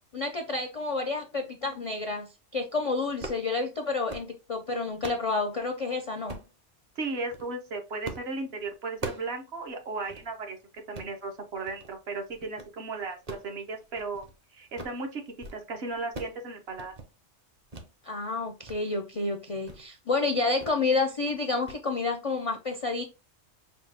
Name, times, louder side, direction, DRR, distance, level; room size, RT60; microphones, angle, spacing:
voice 1, 0.1-2.3 2.5-6.4 18.0-23.0, left 3 dB, 50° left, 5 dB, 0.4 m, -29 dB
sound 1, 3.1-3.5 3.9-4.3 4.7-5.3 6.3-6.5 7.2-7.5 8.0-8.3 8.6-9.4 9.7-9.8 10.1-10.3 10.8-11.1 11.7-12.0 12.3-12.7 13.1-14.3 14.6-15.0 15.3-15.6 15.9-16.4 16.7-17.1 17.7-17.9 18.3-18.8 19.1-19.2 19.6-19.9 20.6-20.8 21.1-21.3 21.7-21.8, right 2 dB, 35° right, 0.8 m, -41 dB
voice 2, 6.9-10.6 10.9-14.3 14.5-15.2 15.5-16.9, right 3 dB, 60° right, 2 dB, 1.1 m, -35 dB
5.1 x 2.4 x 3.3 m, 0.29 s
omnidirectional pair, 1.2 m